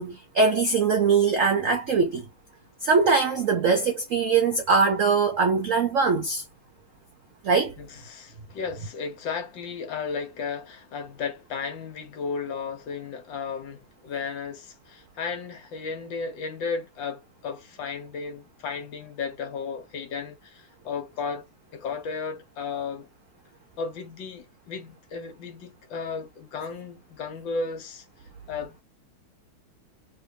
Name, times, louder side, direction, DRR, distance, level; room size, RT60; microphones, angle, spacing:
voice 1, 0.0-2.2 2.8-6.4 7.4-7.7, right 5 dB, 75° right, 0.7 m, -22 dB
voice 2, 7.8-21.5 21.7-23.1 23.8-28.0 28.5-28.8, left 5 dB, 70° left, 1.6 m, -34 dB
3.4 x 2.9 x 2.7 m
omnidirectional pair, 2.3 m